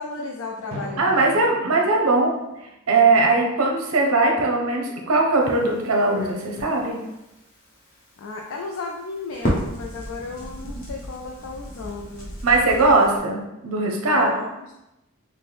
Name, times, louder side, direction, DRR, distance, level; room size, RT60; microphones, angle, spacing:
voice 1, 0.0-1.4 8.2-12.3 14.1-14.7, left 4 dB, 75° left, 0 dB, 0.4 m, -34 dB
Drum, 0.7-3.4, equal, 45° right, 0.9 m, -41 dB
voice 2, 1.0-2.3 2.9-6.9 10.6-10.7 12.4-14.3, right 3 dB, 85° right, 0 dB, 0.6 m, -20 dB
Crackle, 5.4-13.2, equal, 40° left, 0.8 m, -34 dB
4.2 x 2.1 x 3.4 m, 0.91 s
head